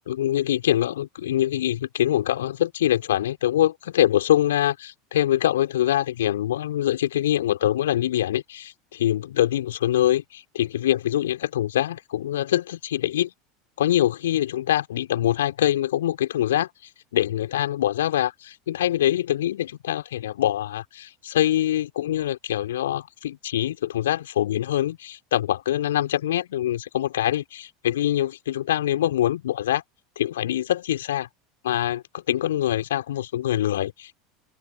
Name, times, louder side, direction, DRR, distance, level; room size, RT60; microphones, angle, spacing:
voice 1, 0.0-13.3 13.8-16.7 17.1-29.8 30.2-31.3 31.6-34.2, left 12 dB, 70° left, 3.5 m, -24 dB
figure-of-eight pair, 75°, 0 cm